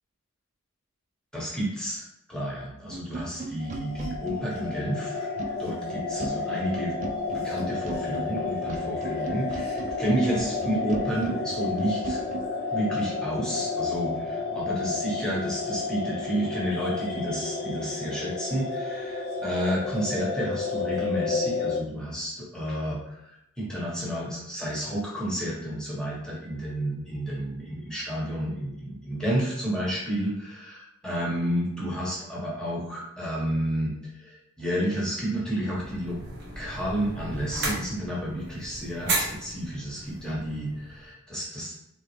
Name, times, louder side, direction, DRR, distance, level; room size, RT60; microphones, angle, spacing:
voice 1, 1.3-2.0 2.3-5.3 5.6-6.9 7.3-12.2 12.7-36.2 36.5-41.7, equal, 5° left, -6 dB, 1.3 m, -31 dB
sound 1, 2.9-12.5, right 2 dB, 35° right, 0.4 m, -38 dB
sound 2, 3.6-21.8, left 4 dB, 45° left, 0.6 m, -31 dB
sound 3, 35.7-41.1, right 2 dB, 55° right, 1.1 m, -34 dB
3.7 x 3.6 x 3.3 m, 0.81 s
head